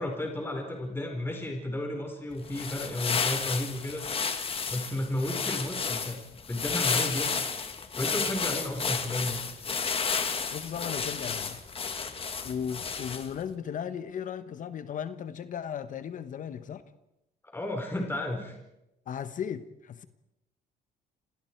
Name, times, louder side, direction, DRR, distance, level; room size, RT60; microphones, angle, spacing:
voice 1, 0.0-4.0 4.7-6.2 6.5-7.3 8.0-9.4 17.5-18.6, left 1 dB, 15° left, 4.5 m, -33 dB
sound 1, 2.4-13.4, left 5 dB, 35° left, 2.4 m, -32 dB
voice 2, 10.5-11.6 12.4-16.8 19.1-20.1, left 8 dB, 50° left, 1.3 m, -36 dB
30.0 x 26.5 x 4.7 m
cardioid pair, 110°, 17 cm